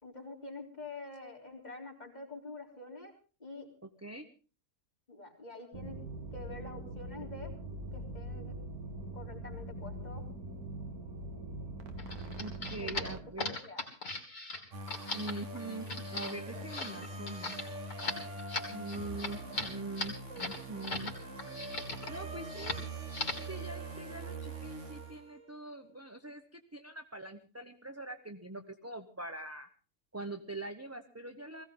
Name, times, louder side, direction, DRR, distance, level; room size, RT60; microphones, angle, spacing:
voice 1, 0.0-3.1 3.4-3.7 5.1-6.0 6.3-7.5 7.9-8.5 9.1-10.3 12.8-13.8 16.5-16.7, left 2 dB, 25° left, 0 dB, 3.9 m, -47 dB
voice 2, 3.8-4.3 12.4-13.5 15.1-17.6 18.7-21.1 22.1-22.8 23.5-29.7 30.1-31.6, right 2 dB, 15° right, 7 dB, 0.7 m, -43 dB
sound 1, 5.7-13.2, right 1 dB, 80° right, 1.9 m, -42 dB
sound 2, 12.0-21.1 21.4-22.2 22.5-22.8 23.1-23.5, left 2 dB, 55° left, 3.3 m, -38 dB
sound 3, 14.7-25.5, right 2 dB, 50° right, 2.1 m, -43 dB
20.0 x 16.5 x 3.9 m, 0.36 s
omnidirectional pair, 1.6 m